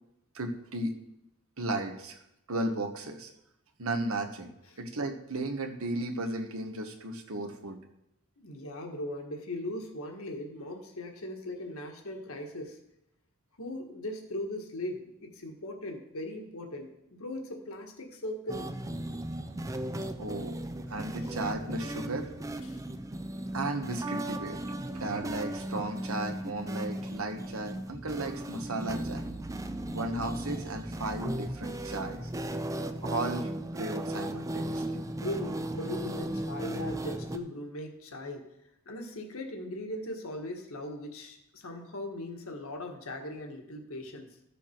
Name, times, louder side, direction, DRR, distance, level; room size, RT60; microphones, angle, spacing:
voice 1, 0.3-1.0 1.6-2.2 2.5-3.3 3.8-7.8 20.2-22.3 23.5-24.6 24.9-29.2 29.9-32.3 33.0-35.0, right 2 dB, 75° right, 4 dB, 1.3 m, -35 dB
voice 2, 8.4-12.8 13.6-18.8 22.6-22.8 35.2-38.5 38.9-44.4, left 1 dB, 75° left, 3 dB, 1.6 m, -39 dB
sound 1, 18.5-37.4, right 1 dB, 15° right, 0.4 m, -36 dB
13.5 x 7.0 x 4.5 m, 0.82 s
head